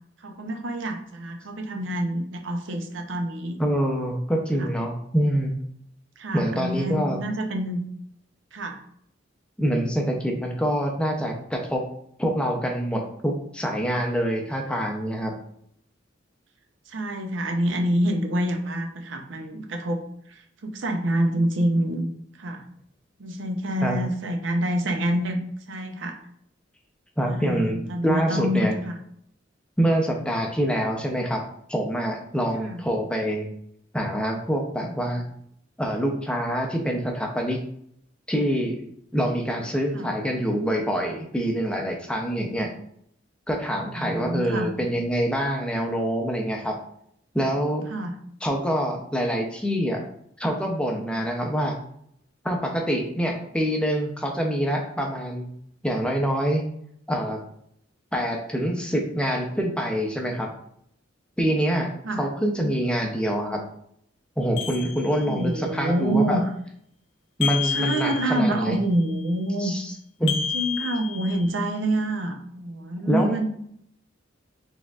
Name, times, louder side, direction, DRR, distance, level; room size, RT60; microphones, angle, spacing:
voice 1, 0.2-3.6 4.6-4.7 6.2-7.8 8.5-8.8 16.9-20.0 20.3-22.1 22.4-22.6 23.2-25.4 25.7-26.2 27.2-29.0 32.6-32.8 39.9-40.1 43.9-44.7 47.9-48.1 62.0-62.3 65.2-66.4 67.6-69.7 70.5-73.5, right 1 dB, 70° right, 5 dB, 0.6 m, -27 dB
voice 2, 3.6-5.5 6.3-7.2 9.6-11.8 12.2-15.3 23.8-24.0 27.2-28.8 29.8-31.4 31.7-33.5 33.9-35.2 35.8-37.6 38.3-38.8 39.1-42.7 43.5-46.8 47.3-47.9 48.4-50.0 50.4-51.7 52.4-55.5 55.8-56.6 57.1-57.4 58.1-60.5 61.4-61.9 62.2-63.6 64.4-66.4 67.4-68.8 69.6-69.9 70.2-70.4 73.1-73.4, equal, 5° left, 1 dB, 0.5 m, -25 dB
sound 1, 64.6-65.6 67.4-68.7 70.3-71.8, left 8 dB, 85° left, 0.7 m, -31 dB
4.3 x 3.5 x 2.3 m, 0.68 s
head